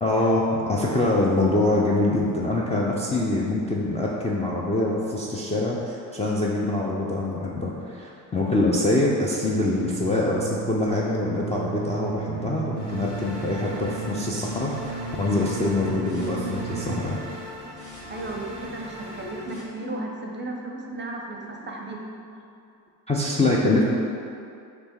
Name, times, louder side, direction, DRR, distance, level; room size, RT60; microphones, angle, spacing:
voice 1, 0.0-17.2 23.1-23.9, left 2 dB, 15° left, -5 dB, 0.4 m, -24 dB
sound 1, 9.8-17.2, right 7 dB, 60° right, 0.5 m, -34 dB
sound 2, 12.8-19.6, left 1 dB, 50° left, 1.5 m, -40 dB
voice 2, 18.1-22.0, right 2 dB, 25° right, 0 dB, 0.6 m, -34 dB
3.3 x 3.0 x 4.4 m, 2.5 s
hypercardioid pair, 55°, 48 cm